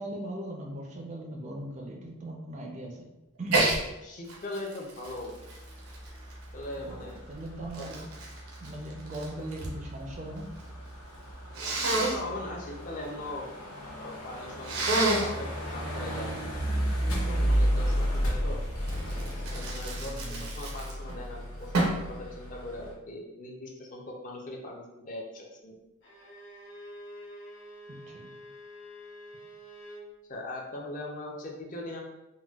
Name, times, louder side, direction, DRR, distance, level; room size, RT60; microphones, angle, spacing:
voice 1, 0.0-3.1 3.4-3.7 6.8-8.1 8.6-10.5 17.4-17.5 20.0-20.5 27.9-28.3, right 1 dB, 35° right, 1 dB, 0.3 m, -39 dB
Sneeze, 3.5-3.8 4.3-6.6 7.3-9.8 10.1-10.7 11.5-12.2 14.6-15.4 18.9-21.2 21.7-22.1, right 2 dB, 85° right, 0.6 m, -29 dB
voice 2, 4.0-5.4 6.5-7.2 7.8-7.9 11.8-13.5 14.0-14.9 15.1-16.3 17.1-18.6 19.5-25.8 30.3-32.0, left 1 dB, 35° left, -1 dB, 0.4 m, -40 dB
sound 1, 5.0-22.9, equal, 85° left, 0.8 m, -34 dB
Bowed string instrument, 26.0-30.1, equal, 55° left, 1.0 m, -47 dB
3.9 x 2.1 x 2.3 m, 0.96 s
head